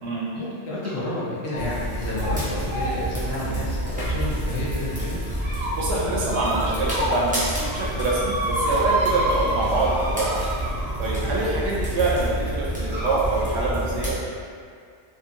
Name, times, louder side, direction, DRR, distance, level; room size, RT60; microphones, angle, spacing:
voice 1, 0.3-5.2, left 1 dB, 65° left, -7 dB, 0.9 m, -30 dB
sound 1, 0.8-1.1 1.5-1.8 2.1-2.3 2.7-4.6 5.1-5.7 6.3-7.3 7.5-11.1 12.1-12.2 12.9-13.3, right 1 dB, 45° right, 0.3 m, -29 dB
sound 2, 1.6-14.1, right 1 dB, 10° right, 0.6 m, -29 dB
voice 2, 5.8-10.4 10.7-14.2, right 2 dB, 75° right, -5 dB, 0.8 m, -25 dB
2.8 x 2.6 x 2.5 m, 2.2 s
omnidirectional pair, 1.2 m